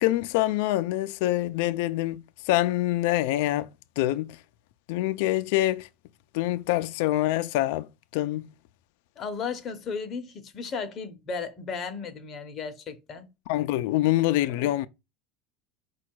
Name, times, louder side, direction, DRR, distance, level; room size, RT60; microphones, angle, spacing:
voice 1, 0.0-3.7 4.0-4.4 4.9-5.9 6.3-8.5 13.5-14.9, left 16 dB, 70° left, 0.3 m, -25 dB
voice 2, 9.2-13.3 14.6-14.7, left 5 dB, 30° left, 0.7 m, -35 dB
5.1 x 2.2 x 4.5 m
cardioid pair, 160°, 0 cm